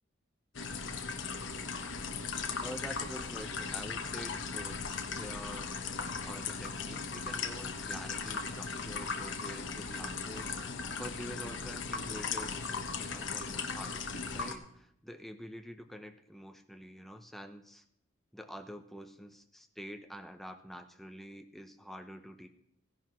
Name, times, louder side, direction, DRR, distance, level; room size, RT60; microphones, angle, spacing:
sound 1, 0.5-14.6, left 5 dB, 65° left, 1.0 m, -38 dB
voice 1, 2.6-5.7 6.2-12.6 13.0-17.8 18.3-22.5, equal, ahead, 6 dB, 0.6 m, -47 dB
16.0 x 10.5 x 3.1 m, 0.72 s
head